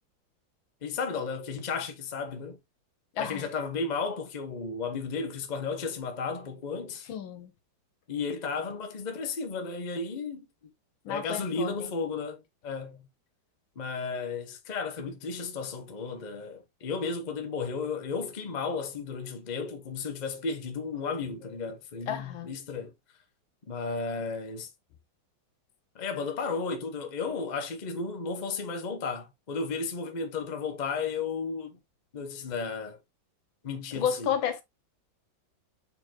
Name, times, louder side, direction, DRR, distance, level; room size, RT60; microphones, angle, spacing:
voice 1, 0.8-2.6 3.2-7.1 8.1-10.5 11.1-13.0 13.8-22.9 23.7-24.7 25.9-31.8 32.1-33.0 33.6-34.3, left 4 dB, 50° left, 0.5 m, -34 dB
voice 2, 3.2-3.5 7.1-7.5 11.0-11.9 22.1-22.5 34.0-34.6, left 8 dB, 80° left, 1.7 m, -31 dB
4.4 x 4.1 x 2.9 m
omnidirectional pair, 2.2 m